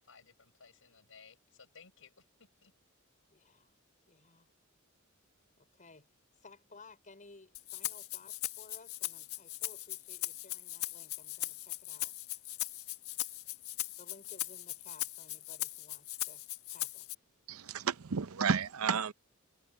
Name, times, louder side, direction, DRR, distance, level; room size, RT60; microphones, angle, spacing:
voice 1, 0.0-2.3 2.6-2.7, left 5 dB, 65° left, 7.2 m, -58 dB
voice 2, 3.3-3.7 4.1-4.5 5.6-6.1 6.4-12.1 14.0-16.4 16.7-17.1, left 3 dB, 35° left, 5.0 m, -58 dB
Rattle (instrument), 7.5-17.1, left 15 dB, 90° left, 1.4 m, -39 dB
voice 3, 17.5-19.1, right 6 dB, 80° right, 0.7 m, -32 dB
head